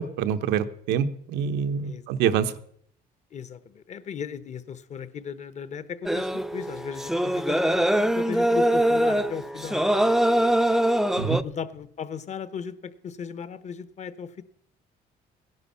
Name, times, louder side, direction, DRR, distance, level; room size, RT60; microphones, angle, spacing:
voice 1, 0.0-2.5 11.2-11.4, right 8 dB, 90° right, 10 dB, 0.9 m, -26 dB
voice 2, 3.3-9.9 11.1-14.4, left 7 dB, 45° left, 15 dB, 1.0 m, -36 dB
sound 1, 6.1-11.4, right 1 dB, ahead, 0.5 m, -23 dB
16.5 x 11.0 x 5.6 m, 0.67 s
cardioid pair, 110°, 17 cm